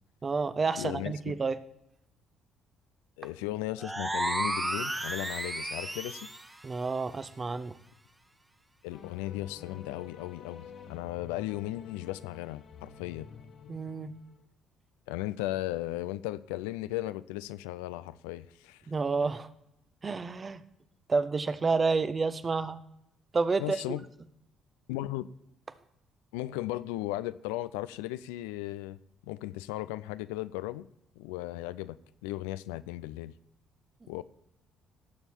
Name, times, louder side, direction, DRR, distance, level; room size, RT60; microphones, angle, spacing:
voice 1, 0.2-1.6 6.6-7.8 13.7-14.1 18.9-19.5 20.0-20.6 21.1-22.8 23.3-24.0 34.0-34.1, right 4 dB, 35° right, 0.8 m, -29 dB
voice 2, 0.8-1.3 3.2-6.3 8.8-13.3 15.1-18.8 23.6-24.0 24.9-25.3 26.3-29.0 29.3-30.9 31.2-33.3 34.1-34.2, left 16 dB, 75° left, 0.4 m, -36 dB
sound 1, 3.8-6.5, right 1 dB, 15° right, 1.3 m, -33 dB
sound 2, 8.9-14.4, left 6 dB, 55° left, 1.2 m, -49 dB
17.5 x 7.1 x 4.4 m
hypercardioid pair, 50°, 0 cm